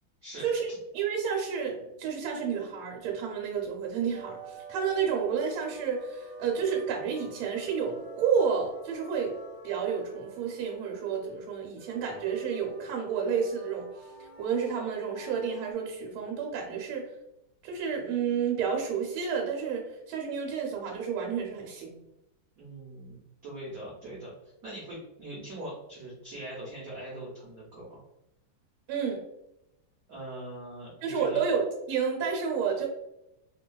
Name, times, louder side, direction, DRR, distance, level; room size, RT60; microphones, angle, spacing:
voice 1, 0.9-9.3 9.6-13.9 14.4-17.0 17.6-22.0 28.9-29.2 31.0-32.9, right 6 dB, 85° right, 0 dB, 1.5 m, -30 dB
sound 1, 4.1-15.7, right 1 dB, 50° right, 1.4 m, -47 dB
voice 2, 22.6-28.0 30.1-31.4, right 1 dB, 70° right, -5 dB, 0.8 m, -42 dB
3.3 x 2.2 x 2.2 m, 0.86 s
omnidirectional pair, 2.3 m